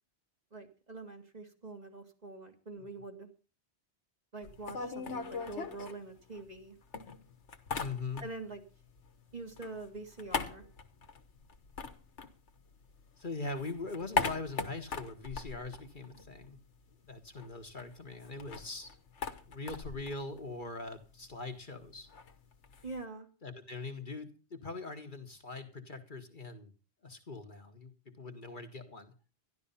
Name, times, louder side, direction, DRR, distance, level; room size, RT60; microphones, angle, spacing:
voice 1, 0.5-3.3 4.3-6.8 8.2-8.6 9.3-10.6 22.8-23.3, right 3 dB, 35° right, 3 dB, 2.1 m, -45 dB
sound 1, 4.4-6.6 6.9-8.6 8.8-13.0 13.3-16.6 16.9-17.0 17.2-23.0, left 4 dB, 90° left, 1.5 m, -40 dB
voice 2, 7.8-8.2 13.2-16.6 17.0-18.9 19.5-22.1 23.4-26.7 27.0-29.1, left 3 dB, 45° left, 5 dB, 1.5 m, -42 dB
12.5 x 12.0 x 5.6 m, 0.35 s
omnidirectional pair, 1.2 m